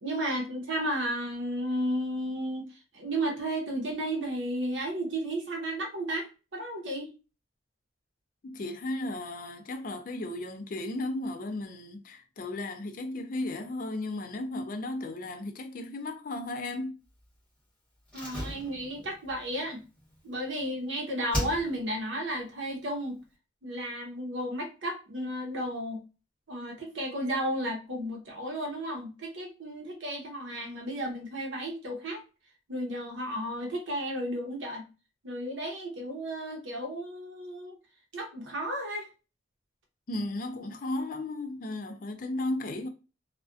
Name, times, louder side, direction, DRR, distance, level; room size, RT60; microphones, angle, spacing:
voice 1, 0.0-2.7 2.9-7.1 18.1-19.8 20.2-23.2 23.6-26.0 26.5-32.2 32.7-34.9 35.2-37.8 38.1-39.1, right 1 dB, 80° right, 0.7 m, -33 dB
voice 2, 8.4-17.0 40.1-42.9, left 2 dB, 45° left, 0.4 m, -35 dB
Slam, 18.1-20.8 21.3-22.1 22.3-22.4, equal, 5° left, 1.1 m, -37 dB
2.4 x 2.1 x 2.4 m
head